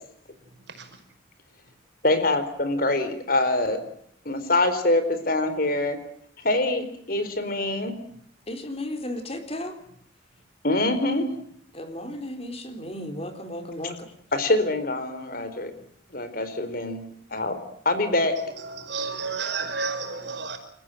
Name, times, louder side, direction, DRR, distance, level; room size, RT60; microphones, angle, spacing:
voice 1, 2.0-3.8 4.3-6.0 6.4-8.0 10.6-11.3 14.3-15.7 16.1-17.0 17.3-17.6 17.8-18.4, left 2 dB, 50° left, 10 dB, 4.3 m, -24 dB
voice 2, 8.5-9.8 11.7-14.1, left 1 dB, 30° left, 7 dB, 3.9 m, -34 dB
voice 3, 18.6-20.6, right 4 dB, 65° right, 7 dB, 5.6 m, -31 dB
29.5 x 15.0 x 9.1 m, 0.69 s
head